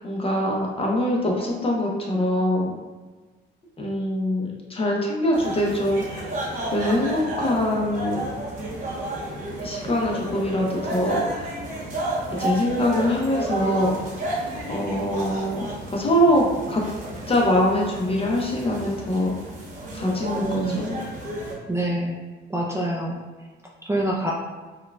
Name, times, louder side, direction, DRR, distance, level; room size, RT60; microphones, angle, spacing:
voice 1, 0.0-2.8 3.8-6.4 6.7-8.3 9.6-11.6 12.3-14.0 14.7-16.8 17.3-19.3 19.9-21.0, left 1 dB, 30° left, -2 dB, 0.7 m, -23 dB
sound 1, 5.3-21.5, right 1 dB, 40° right, 1.0 m, -32 dB
voice 2, 20.4-20.8 21.7-22.2 22.5-23.2 23.8-24.3, right 1 dB, 15° right, -4 dB, 0.4 m, -25 dB
4.5 x 2.3 x 2.2 m, 1.3 s
cardioid pair, 90°, 20 cm